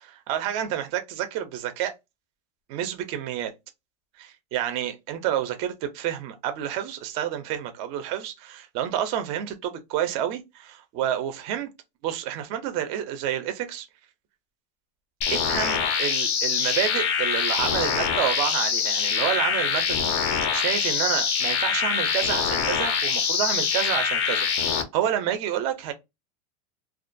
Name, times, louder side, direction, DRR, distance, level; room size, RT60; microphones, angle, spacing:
voice 1, 0.0-1.9 2.7-3.5 4.2-11.7 12.0-13.9 15.3-25.9, right 10 dB, 30° right, 0.4 m, -29 dB
sound 1, 15.2-24.8, left 6 dB, 40° left, 0.5 m, -24 dB
2.3 x 2.2 x 2.5 m
supercardioid pair, 170°, 21 cm